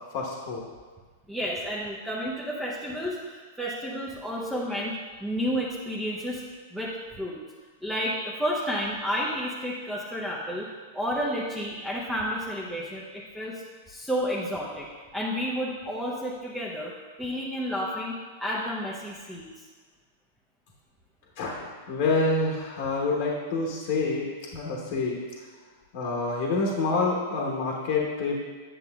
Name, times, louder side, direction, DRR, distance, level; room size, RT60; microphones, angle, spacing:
voice 1, 0.1-0.6 21.4-25.5 25.9-28.4, left 3 dB, 50° left, -2 dB, 1.0 m, -27 dB
voice 2, 1.3-6.4 6.7-7.4 7.8-10.7 10.9-14.9 15.1-16.9 17.2-19.7, equal, 5° right, -5 dB, 0.8 m, -31 dB
9.0 x 6.9 x 2.3 m, 1.5 s
figure-of-eight pair, 100°, 0 cm